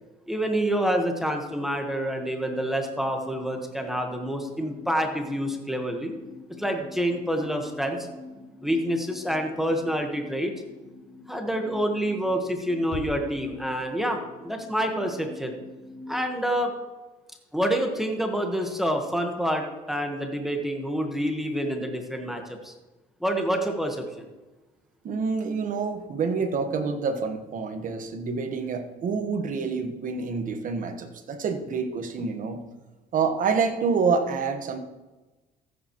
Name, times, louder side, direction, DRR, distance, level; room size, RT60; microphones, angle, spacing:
voice 1, 0.3-6.1 6.6-8.1 8.6-10.5 11.3-15.6 16.1-16.7 17.5-22.7 23.2-24.3, equal, ahead, 3 dB, 1.3 m, -27 dB
sound 1, 2.5-16.2, left 2 dB, 75° left, 1.9 m, -47 dB
sound 2, 12.9-14.5, left 5 dB, 40° left, 0.6 m, -41 dB
voice 2, 25.0-32.6 33.1-34.8, right 5 dB, 50° right, 7 dB, 1.3 m, -27 dB
14.5 x 8.5 x 3.0 m, 1.1 s
cardioid pair, 110°, 17 cm